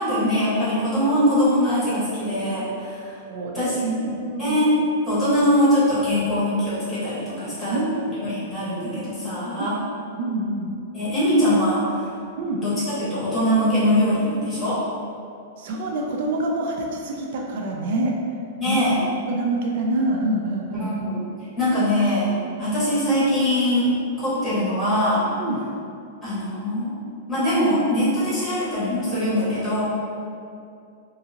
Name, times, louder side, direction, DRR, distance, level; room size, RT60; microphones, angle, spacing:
voice 1, 0.0-3.2 3.5-4.1 4.4-4.7 5.1-7.8 8.2-9.8 10.9-12.1 12.5-14.8 18.6-19.0 20.8-21.2 21.6-22.3 22.6-25.2 26.2-26.9 27.3-29.8, equal, 5° left, -12 dB, 1.1 m, -22 dB
voice 2, 3.3-4.6 7.7-8.0 9.6-9.7 10.2-10.7 12.4-12.6 15.6-18.1 18.6-18.8 19.3-21.1 22.4-22.6 25.4-25.6, right 2 dB, 55° right, 0 dB, 0.3 m, -26 dB
2.6 x 2.5 x 2.7 m, 2.5 s
supercardioid pair, 155°, 0 cm